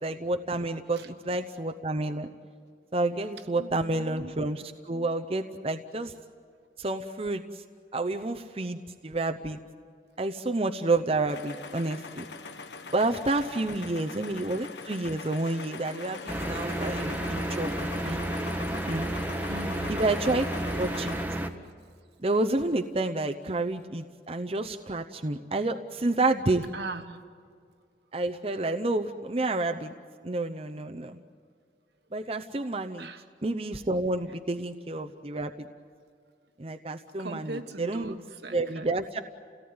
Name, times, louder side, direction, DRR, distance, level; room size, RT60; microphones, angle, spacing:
voice 1, 0.0-2.3 2.9-6.1 6.8-7.6 7.9-9.6 10.2-12.2 12.9-18.2 18.9-19.1 19.9-20.5 20.8-21.2 22.2-26.6 28.1-29.9 30.2-31.2 32.1-33.1 33.4-35.7 36.6-38.2 38.5-39.2, right 2 dB, 35° right, 5 dB, 0.7 m, -29 dB
voice 2, 3.5-4.3 13.5-14.2 19.5-20.0 26.7-27.2 33.0-33.2 37.2-38.9, right 2 dB, 75° right, 7 dB, 1.5 m, -40 dB
sound 1, 11.3-21.2, left 4 dB, 85° left, 1.2 m, -42 dB
sound 2, 16.3-21.5, right 1 dB, 10° right, 1.1 m, -31 dB
29.5 x 18.0 x 9.6 m, 2.2 s
head